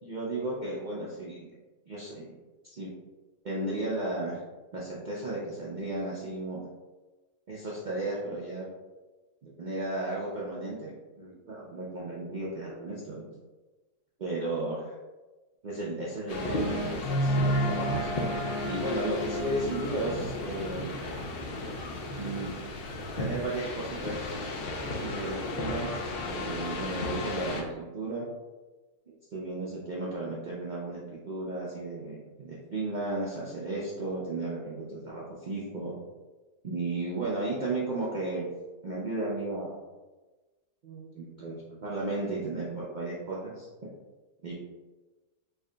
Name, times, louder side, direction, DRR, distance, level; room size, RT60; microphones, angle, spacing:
voice 1, 0.0-1.5 1.9-2.3 2.6-2.9 3.4-4.4 4.7-6.6 7.5-8.7 9.4-13.3 14.2-15.0 15.6-18.1 18.6-21.0 22.1-22.5 23.0-24.3 25.0-28.2 29.1-31.0 31.3-35.9 36.6-38.5 38.8-39.8 40.8-43.7 44.4-44.5, right 2 dB, 60° right, -6 dB, 0.4 m, -34 dB
sound 1, 16.3-27.6, left 1 dB, 65° left, 0.6 m, -32 dB
3.4 x 2.2 x 3.7 m, 1.2 s
omnidirectional pair, 1.5 m